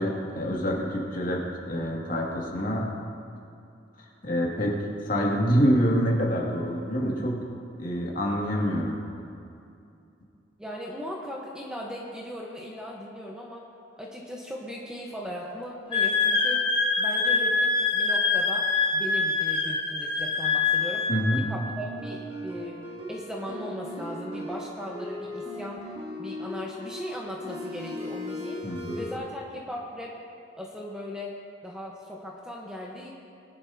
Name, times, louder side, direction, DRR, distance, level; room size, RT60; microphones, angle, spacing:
voice 1, 0.0-1.4 1.7-2.9 4.2-4.8 5.0-7.4 7.8-9.0 21.1-21.4 28.6-29.0, equal, 45° left, -3 dB, 2.1 m, -26 dB
voice 2, 10.6-13.6 14.0-16.6 17.0-18.7 18.9-21.1 21.4-25.8 26.2-28.7 28.9-30.2 30.5-31.3 31.6-33.1, equal, 5° right, -3 dB, 1.0 m, -38 dB
Wind instrument woodwind instrument, 15.9-21.2, left 4 dB, 25° left, 1.7 m, -24 dB
sound 1, 21.5-29.1, left 1 dB, 25° right, 2.6 m, -38 dB
21.0 x 11.5 x 2.8 m, 2.6 s
head